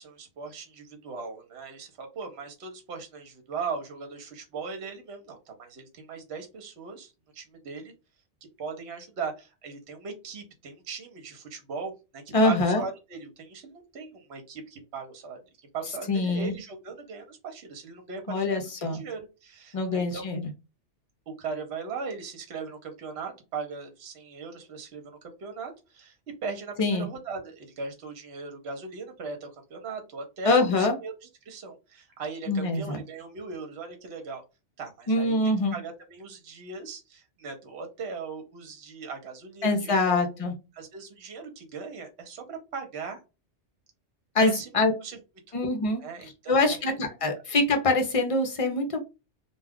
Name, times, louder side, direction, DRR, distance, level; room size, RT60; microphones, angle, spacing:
voice 1, 0.0-7.9 8.6-15.4 15.7-20.3 21.3-26.2 26.4-31.1 31.4-34.4 34.8-35.4 35.7-40.3 40.7-43.2 44.4-45.2 46.0-46.8, right 5 dB, 65° right, 5 dB, 1.0 m, -39 dB
voice 2, 12.3-12.8 16.1-16.5 18.3-19.0 19.7-20.4 26.8-27.1 30.4-30.9 32.5-33.0 35.1-35.7 39.6-40.5 44.3-44.9 45.5-46.0 46.5-49.0, left 2 dB, 40° left, 4 dB, 0.5 m, -24 dB
2.3 x 2.3 x 3.5 m, 0.28 s
omnidirectional pair, 1.2 m